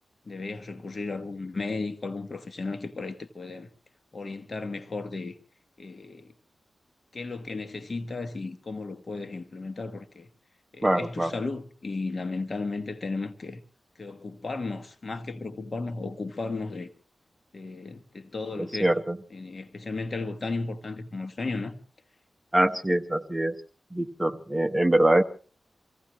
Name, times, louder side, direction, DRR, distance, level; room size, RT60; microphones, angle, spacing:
voice 1, 0.2-3.7 4.1-5.4 5.8-6.3 7.1-10.3 10.7-13.6 14.0-16.9 17.5-18.9 19.3-21.8, left 3 dB, 50° left, 1.3 m, -34 dB
voice 2, 10.8-11.3 18.8-19.2 22.5-23.5 23.9-25.2, right 1 dB, 15° right, 1.0 m, -23 dB
26.0 x 16.0 x 3.1 m
wide cardioid pair, 75°, 0 cm